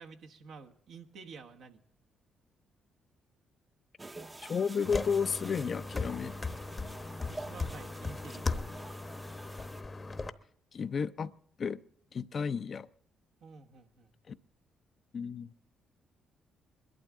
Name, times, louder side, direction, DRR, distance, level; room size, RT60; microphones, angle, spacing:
voice 1, 0.0-1.8 7.3-8.5 13.4-14.1, right 4 dB, 75° right, 1.2 m, -50 dB
sound 1, 4.0-9.8, right 2 dB, 20° right, 0.7 m, -48 dB
voice 2, 4.4-6.4 10.7-11.3 11.6-11.8 12.1-12.9 14.3-14.4 15.1-15.5, left 6 dB, 50° left, 0.5 m, -32 dB
sound 2, 4.8-10.3, left 3 dB, 35° left, 0.9 m, -38 dB
22.0 x 12.0 x 3.6 m
supercardioid pair, 60°, 0 cm